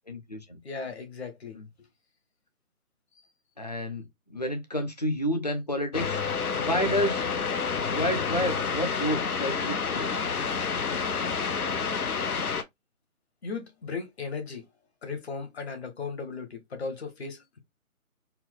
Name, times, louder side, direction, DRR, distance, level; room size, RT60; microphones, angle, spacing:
voice 1, 0.1-0.6 1.5-1.7 3.6-6.2 6.5-7.3 7.9-10.1, equal, 30° left, 0.6 m, -30 dB
voice 2, 0.6-1.6 13.4-14.6 15.0-17.6, left 4 dB, 45° left, 1.3 m, -36 dB
sound 1, 5.9-12.6, left 5 dB, 80° left, 0.9 m, -29 dB
4.4 x 2.1 x 3.6 m
figure-of-eight pair, 160°, 44 cm